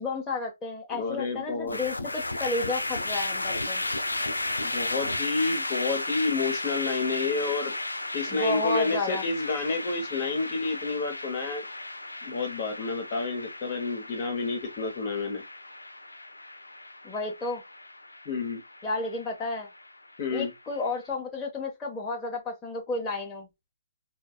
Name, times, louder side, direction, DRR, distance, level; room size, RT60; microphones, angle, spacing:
voice 1, 0.0-3.8 8.3-9.2 17.0-17.6 18.8-19.7 20.3-23.5, left 3 dB, 15° left, 0.9 m, -32 dB
voice 2, 0.9-1.8 4.6-7.8 8.1-11.6 12.2-15.4 18.2-18.6 20.2-20.5, left 4 dB, 40° left, 1.0 m, -30 dB
sound 1, 1.7-20.9, left 2 dB, 90° left, 0.4 m, -34 dB
4.5 x 2.3 x 2.3 m
figure-of-eight pair, 135°, 0 cm